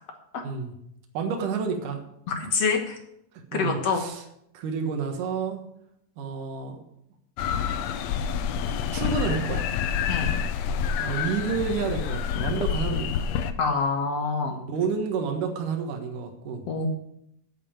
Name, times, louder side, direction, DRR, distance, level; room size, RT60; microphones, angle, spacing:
voice 1, 0.4-0.7 1.1-2.0 3.5-4.2 4.5-5.6 6.2-6.8 8.9-9.7 11.0-13.3 14.5-16.7, right 5 dB, 75° right, 3 dB, 3.0 m, -29 dB
voice 2, 2.3-3.0 3.5-4.0 10.1-10.3 13.6-14.6 16.7-16.9, left 4 dB, 55° left, 4 dB, 2.2 m, -26 dB
sound 1, 7.4-13.5, left 8 dB, 75° left, 1.7 m, -28 dB
9.2 x 8.4 x 8.8 m, 0.76 s
omnidirectional pair, 3.8 m